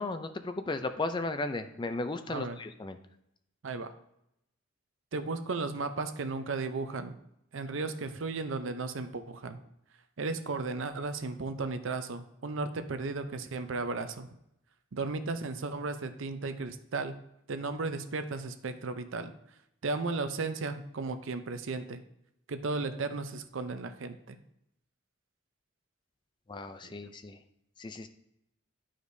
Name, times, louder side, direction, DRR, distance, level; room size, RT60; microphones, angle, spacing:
voice 1, 0.0-3.0 26.5-27.4 27.8-28.1, left 2 dB, 20° left, 9 dB, 0.4 m, -35 dB
voice 2, 2.3-2.6 3.6-3.9 5.1-7.2 7.5-9.6 10.2-14.3 14.9-17.1 17.5-19.3 19.8-22.0 22.5-24.4 26.8-26.9, right 3 dB, 70° right, 9 dB, 0.6 m, -35 dB
11.0 x 5.0 x 2.7 m, 0.80 s
head